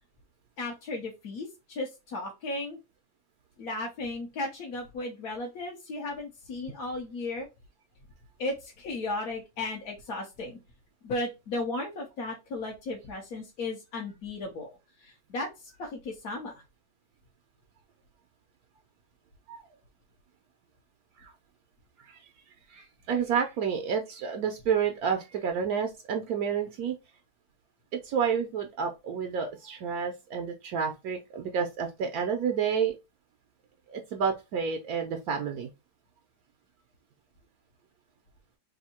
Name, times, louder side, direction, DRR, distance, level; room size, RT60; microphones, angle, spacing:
voice 1, 0.6-2.8 3.6-7.5 8.4-10.6 11.0-14.7 15.0-16.6, left 2 dB, 65° left, 1.3 m, -35 dB
voice 2, 22.7-27.0 27.9-32.9 33.9-35.7, right 7 dB, 70° right, 1.0 m, -30 dB
3.5 x 2.6 x 4.2 m
omnidirectional pair, 1.8 m